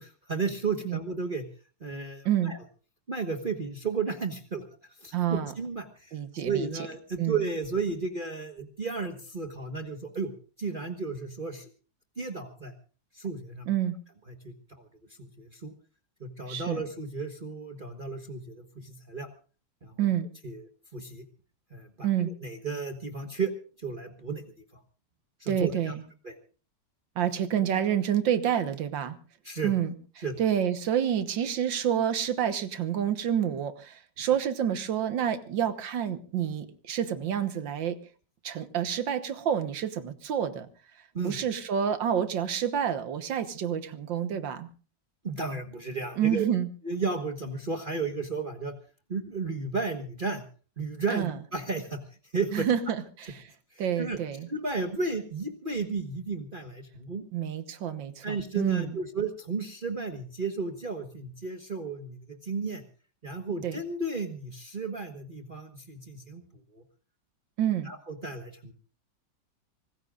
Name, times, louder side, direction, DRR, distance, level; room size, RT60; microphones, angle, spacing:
voice 1, 0.0-1.5 1.8-2.6 3.1-10.3 10.6-11.7 12.2-12.7 13.1-13.7 14.3-14.9 15.2-15.7 16.2-19.3 19.8-20.1 20.4-21.2 21.7-23.5 23.8-24.8 25.4-25.9 26.2-26.3 29.4-29.7 30.2-30.4 41.1-41.4 45.2-46.4 46.8-48.7 49.1-50.4 50.8-52.0 52.3-52.7 53.7-54.2 54.5-57.2 58.2-62.8 63.2-66.4 66.7-66.8 67.8-68.7, right 4 dB, 30° right, 5 dB, 1.4 m, -33 dB
voice 2, 5.1-5.5 6.1-6.7 7.2-7.4 13.7-14.0 16.5-16.8 20.0-20.3 22.0-22.3 25.5-26.0 27.2-29.2 29.6-29.9 30.4-38.0 38.4-40.7 41.2-44.7 46.2-46.7 51.1-51.3 52.5-53.5 53.8-54.5 57.3-59.0 63.6-63.8 67.6-67.9, right 9 dB, 85° right, 10 dB, 1.9 m, -28 dB
25.5 x 19.0 x 2.5 m, 0.38 s
omnidirectional pair, 2.0 m